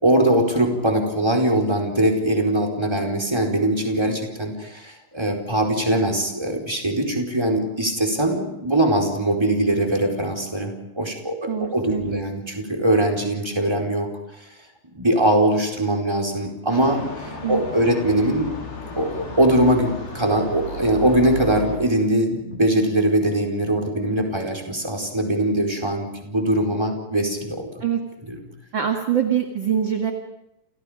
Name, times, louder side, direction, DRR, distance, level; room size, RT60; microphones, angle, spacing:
voice 1, 0.0-14.1 14.9-18.5 19.0-27.7 28.3-28.4, right 1 dB, 5° right, 1 dB, 4.1 m, -21 dB
voice 2, 11.5-12.2 17.4-17.6 27.8-28.0 28.7-30.1, right 9 dB, 35° right, 3 dB, 2.1 m, -24 dB
sound 1, 16.7-21.8, left 2 dB, 70° left, 6.8 m, -34 dB
29.5 x 29.5 x 5.2 m, 0.86 s
omnidirectional pair, 4.5 m